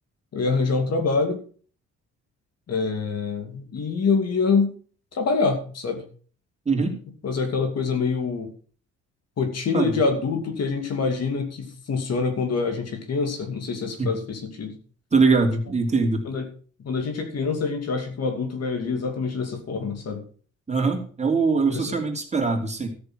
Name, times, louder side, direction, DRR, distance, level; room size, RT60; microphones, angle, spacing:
voice 1, 0.3-1.4 2.7-4.7 5.1-6.0 7.2-8.5 9.4-14.8 16.3-16.5 16.8-20.2 21.7-21.8, left 4 dB, 55° left, 6 dB, 2.8 m, -25 dB
voice 2, 6.6-7.0 9.7-10.0 14.0-14.1 15.1-16.3 20.7-22.9, right 4 dB, 20° right, 2 dB, 3.0 m, -22 dB
13.5 x 6.7 x 6.3 m, 0.43 s
cardioid pair, 90°, 30 cm